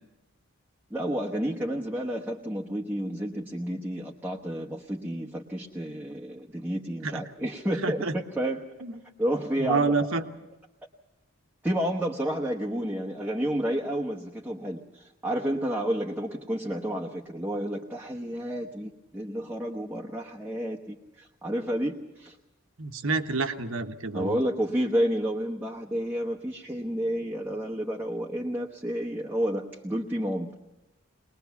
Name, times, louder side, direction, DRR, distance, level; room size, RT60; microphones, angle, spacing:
voice 1, 0.9-8.7 9.2-10.1 11.6-22.4 24.1-30.5, equal, 10° right, -3 dB, 1.0 m, -30 dB
voice 2, 7.8-8.1 8.8-8.9 9.6-10.2 22.8-24.4, right 3 dB, 75° right, 7 dB, 1.3 m, -28 dB
21.5 x 20.5 x 7.1 m, 1.0 s
head